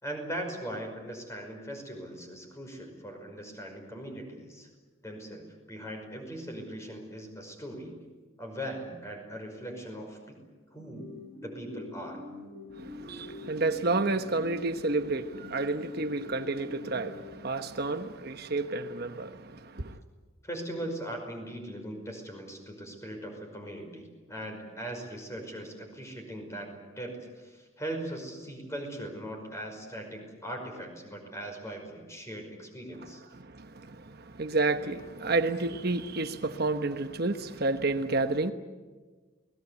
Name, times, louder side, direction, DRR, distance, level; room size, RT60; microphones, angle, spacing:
voice 1, 0.0-4.7 5.0-8.0 8.4-10.4 10.7-11.1 11.4-12.2 20.4-33.2, right 1 dB, 15° left, 5.5 m, -40 dB
sound 1, 10.7-17.9, left 2 dB, 85° left, 7.9 m, -45 dB
voice 2, 12.8-20.0 33.3-38.5, right 3 dB, 50° right, 1.1 m, -30 dB
29.0 x 19.5 x 8.3 m
head